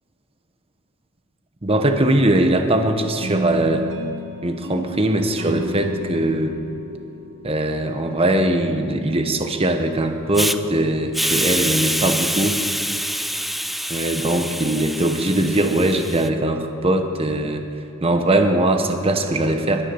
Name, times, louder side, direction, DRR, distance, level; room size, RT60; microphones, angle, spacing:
voice 1, 1.6-3.9 4.4-6.5 7.4-12.6 13.9-17.6 18.0-19.8, right 1 dB, 25° right, 6 dB, 1.0 m, -20 dB
sound 1, 3.2-8.3, equal, 60° right, 1.5 m, -33 dB
Hiss, 10.3-10.6 11.1-16.3, equal, ahead, 0.3 m, -25 dB
21.5 x 7.4 x 6.9 m, 2.7 s
head